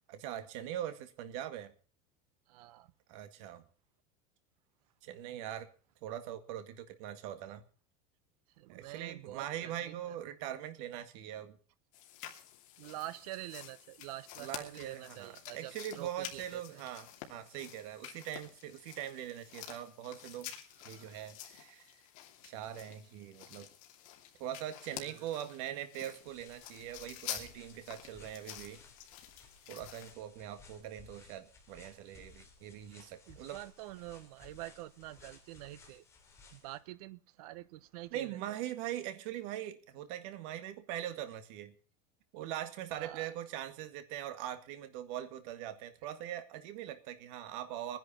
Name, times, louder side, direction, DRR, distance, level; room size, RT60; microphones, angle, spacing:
voice 1, 0.1-1.7 3.1-3.6 5.0-5.7 6.0-7.6 8.7-11.6 14.4-20.5 20.8-21.9 22.4-23.7 24.4-28.8 29.7-33.6 38.1-41.7 42.3-48.0, right 11 dB, 50° right, 1.9 m, -42 dB
voice 2, 2.5-2.9 8.6-10.0 12.8-16.8 20.9-21.1 24.9-25.3 33.3-36.0 36.5-38.4 42.9-43.3, right 16 dB, 70° right, 1.1 m, -47 dB
sound 1, 11.9-30.1, left 11 dB, 55° left, 2.8 m, -49 dB
sound 2, 26.2-36.8, left 3 dB, 15° left, 3.0 m, -59 dB
22.0 x 10.5 x 4.3 m
supercardioid pair, 180°, 20 cm